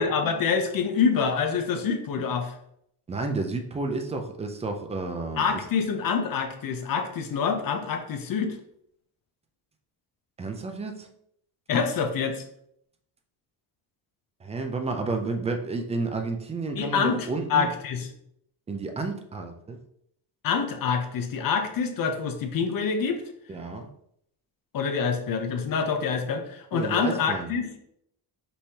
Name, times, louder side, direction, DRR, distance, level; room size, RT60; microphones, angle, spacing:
voice 1, 0.0-2.6 5.4-8.5 11.7-12.4 16.8-18.1 20.4-23.2 24.7-27.7, left 6 dB, 50° left, 5 dB, 0.7 m, -26 dB
voice 2, 3.1-5.5 10.4-11.1 14.4-17.7 18.7-19.8 23.5-23.9 26.7-27.5, right 3 dB, 15° right, 5 dB, 0.3 m, -31 dB
5.3 x 3.1 x 2.8 m, 0.72 s
cardioid pair, 150°, 45 cm